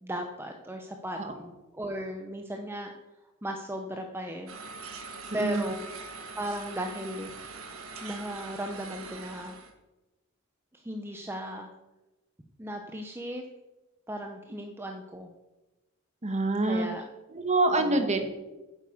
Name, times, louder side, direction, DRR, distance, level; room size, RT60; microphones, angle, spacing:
voice 1, 0.0-1.2 1.7-2.9 3.4-4.5 5.3-5.8 6.4-7.3 8.0-9.6 10.7-11.7 12.6-13.4 14.1-15.3 16.6-17.0 17.8-18.0, right 1 dB, 10° right, 3 dB, 0.8 m, -36 dB
sound 1, 4.5-9.7, right 4 dB, 75° right, 1.6 m, -43 dB
voice 2, 5.3-5.6 16.2-16.9 17.3-18.2, right 2 dB, 35° right, 6 dB, 1.5 m, -26 dB
9.9 x 7.8 x 7.1 m, 1.1 s
head